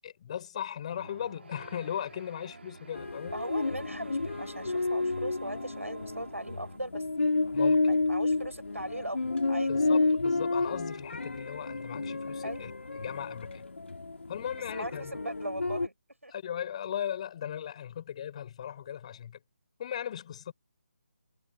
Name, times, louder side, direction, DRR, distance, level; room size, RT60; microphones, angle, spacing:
voice 1, 0.0-3.3 7.5-7.8 9.7-13.6 14.3-15.2 16.3-19.4 19.8-20.5, left 9 dB, 30° left, 6.5 m, -38 dB
sound 1, 0.9-6.8, right 3 dB, 55° right, 5.9 m, -50 dB
sound 2, 2.9-15.9, left 3 dB, 60° left, 2.8 m, -30 dB
voice 2, 3.3-9.7 12.4-12.8 14.7-15.9 16.2-16.3, right 1 dB, 85° right, 6.4 m, -39 dB
figure-of-eight pair, 150°, 7 cm